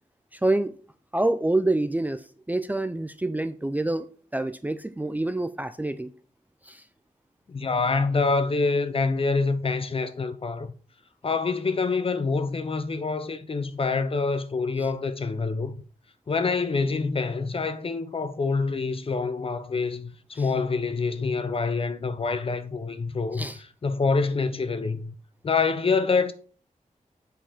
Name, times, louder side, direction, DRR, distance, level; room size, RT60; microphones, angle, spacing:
voice 1, 0.3-0.7 1.1-4.1 4.3-6.1 6.7-6.8 23.3-23.6, right 2 dB, 10° right, 0.4 m, -27 dB
voice 2, 7.5-10.7 11.2-15.8 16.3-23.5 23.8-25.1 25.4-26.3, left 4 dB, 40° left, 0.7 m, -26 dB
7.9 x 4.8 x 4.3 m
wide cardioid pair, 115°, 14 cm